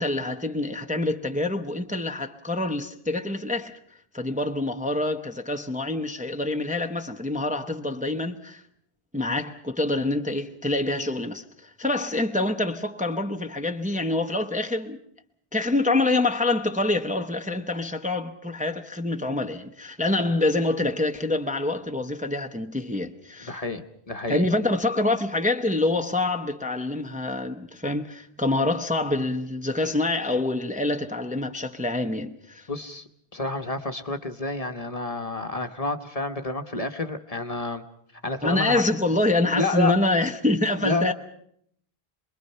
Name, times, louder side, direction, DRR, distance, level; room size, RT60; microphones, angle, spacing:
voice 1, 0.0-3.8 4.1-8.6 9.1-15.0 15.5-23.6 24.3-32.7 38.4-41.1, left 2 dB, 10° right, 0.9 m, -26 dB
voice 2, 23.4-24.5 32.7-37.8 38.2-38.8 39.5-39.9 40.8-41.1, left 2 dB, 35° left, 1.1 m, -29 dB
27.0 x 21.5 x 5.6 m
omnidirectional pair, 1.1 m